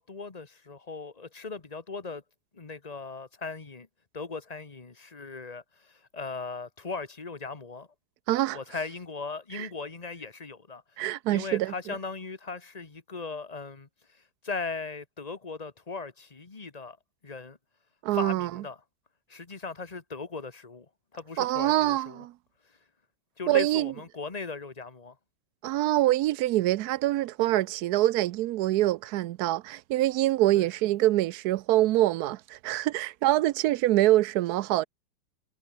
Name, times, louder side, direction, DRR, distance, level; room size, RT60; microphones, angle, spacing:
voice 1, 0.0-2.2 2.5-3.9 4.1-7.9 8.5-10.8 11.3-13.9 14.4-17.0 17.2-17.6 18.1-18.8 19.3-20.9 21.1-22.2 23.4-25.1 30.5-30.7, left 4 dB, 20° left, 1.3 m, -38 dB
voice 2, 8.3-8.6 9.5-9.7 11.0-11.7 18.0-18.5 21.4-22.3 23.5-23.9 25.6-34.8, right 15 dB, 70° right, 0.9 m, -25 dB
omnidirectional pair, 2.1 m